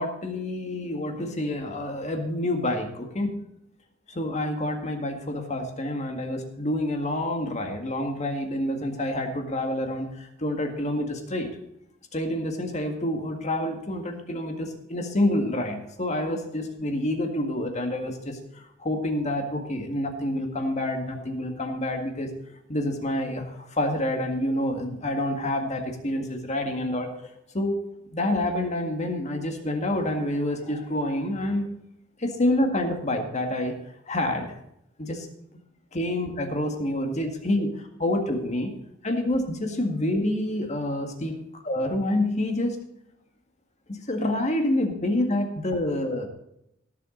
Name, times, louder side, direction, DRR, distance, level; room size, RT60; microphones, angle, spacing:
voice 1, 0.0-3.4 4.1-11.5 12.1-22.3 22.7-27.1 27.5-27.8 28.1-31.7 32.2-33.8 34.1-34.5 35.0-35.3 35.9-37.7 38.0-38.7 39.0-41.4 41.7-42.7 43.9-46.3, left 1 dB, 35° left, 4 dB, 1.9 m, -27 dB
17.5 x 7.5 x 4.0 m, 0.80 s
head